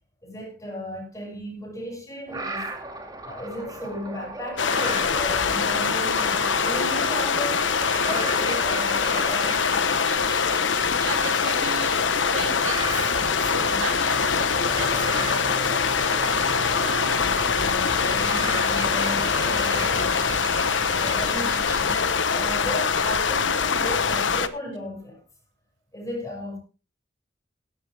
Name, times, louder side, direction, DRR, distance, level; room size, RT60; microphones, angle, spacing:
voice 1, 0.2-2.6 3.2-7.7 8.0-9.9 17.6-21.8 22.3-25.2 25.9-26.6, equal, 20° left, 7.0 m, -35 dB
sound 1, 2.3-22.0, right 2 dB, 20° right, 2.3 m, -35 dB
sound 2, 4.6-24.5, left 6 dB, 90° left, 1.1 m, -23 dB
voice 2, 11.1-12.0 12.3-13.1 13.4-17.2, right 4 dB, 85° right, 3.0 m, -37 dB
17.5 x 11.5 x 3.5 m
head